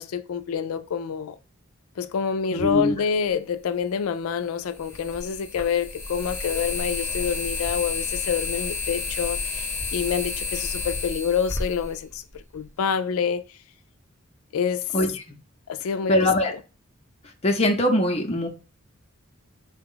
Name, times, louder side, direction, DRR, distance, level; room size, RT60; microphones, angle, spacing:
voice 1, 0.0-1.4 2.0-13.4 14.5-14.9 15.7-16.1, left 7 dB, 80° left, 0.4 m, -27 dB
voice 2, 2.5-2.9 14.9-15.2 16.1-16.5 17.4-18.5, left 1 dB, 30° left, 0.7 m, -22 dB
sound 1, 3.3-3.4 4.7-12.7, left 3 dB, 10° left, 1.0 m, -31 dB
4.0 x 2.4 x 3.6 m
head